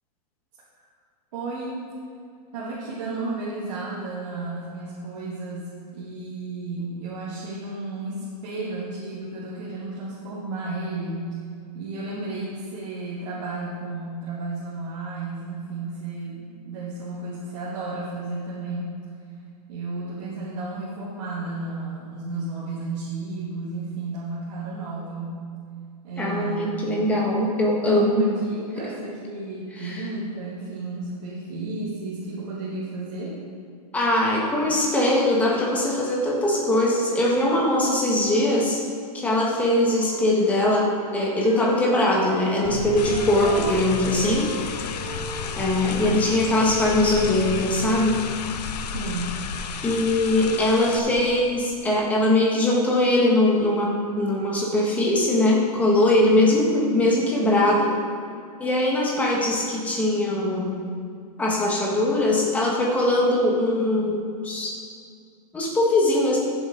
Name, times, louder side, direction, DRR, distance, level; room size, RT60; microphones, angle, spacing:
voice 1, 1.3-1.8 2.5-11.4 11.7-18.9 19.7-25.4 26.0-26.9 27.7-33.4 48.9-49.3, right 2 dB, 50° right, -8 dB, 2.3 m, -33 dB
voice 2, 26.2-28.3 29.8-30.1 33.9-38.8 39.1-44.5 45.5-48.2 49.8-58.0 58.6-60.8 61.4-64.8 65.5-66.4, left 1 dB, 5° left, -3 dB, 1.4 m, -21 dB
Wind instrument woodwind instrument, 39.8-42.8 43.0-46.2, right 1 dB, 15° right, 1.3 m, -40 dB
sound 1, 42.6-51.8, left 4 dB, 35° left, 0.6 m, -35 dB
sound 2, 43.0-51.0, left 8 dB, 75° left, 0.8 m, -35 dB
14.0 x 7.1 x 3.9 m, 2.2 s
hypercardioid pair, 165°, 21 cm